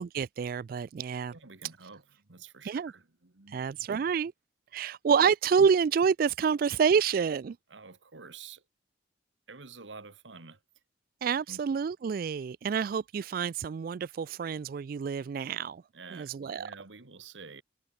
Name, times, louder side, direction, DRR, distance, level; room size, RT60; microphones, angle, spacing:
voice 1, 0.0-1.3 2.6-2.9 3.5-4.3 4.7-7.6 11.2-15.8 16.1-16.7, right 6 dB, 50° right, 0.3 m, -28 dB
voice 2, 1.3-3.9 7.7-8.6 9.5-10.6 11.5-11.6 15.9-17.6, right 4 dB, 90° right, 1.7 m, -49 dB
head